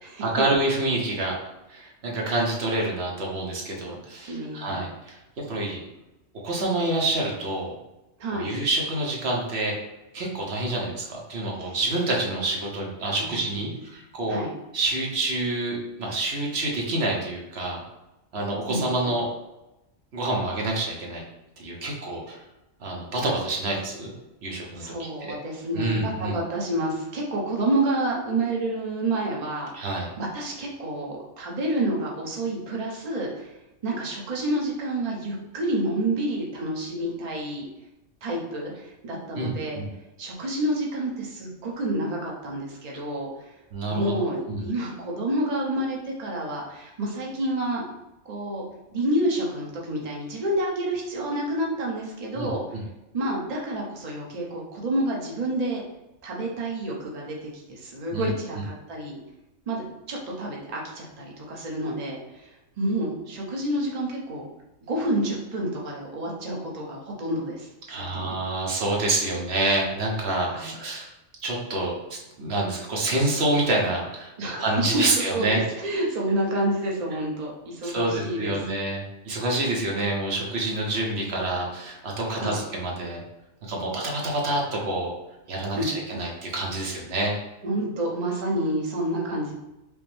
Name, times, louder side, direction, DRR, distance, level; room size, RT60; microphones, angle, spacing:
voice 1, 0.2-1.4 1.7-5.8 6.4-7.7 8.3-9.7 10.1-14.4 14.7-17.8 18.3-19.3 20.1-21.2 21.6-22.4 22.8-24.1 24.4-24.9 25.2-25.4 25.7-26.4 29.7-30.1 39.3-39.9 43.7-44.1 44.5-44.6 52.3-52.8 58.1-58.3 67.9-71.1 71.4-75.6 77.8-83.2 83.6-85.1 85.5-87.3, right 2 dB, 60° right, -2 dB, 1.1 m, -27 dB
voice 2, 4.3-4.8 8.2-8.5 11.6-11.8 13.2-13.7 14.3-14.5 18.7-19.1 24.5-33.6 33.8-37.7 38.2-39.8 40.2-43.5 43.8-47.8 48.2-48.6 48.9-52.8 53.1-55.8 56.2-59.2 59.7-64.5 64.9-68.3 70.4-70.8 74.4-75.0 75.3-78.5 82.3-82.6 85.8-85.9 87.6-89.5, right 1 dB, 40° right, -2 dB, 0.8 m, -29 dB
5.1 x 2.0 x 3.1 m, 0.95 s
omnidirectional pair, 1.3 m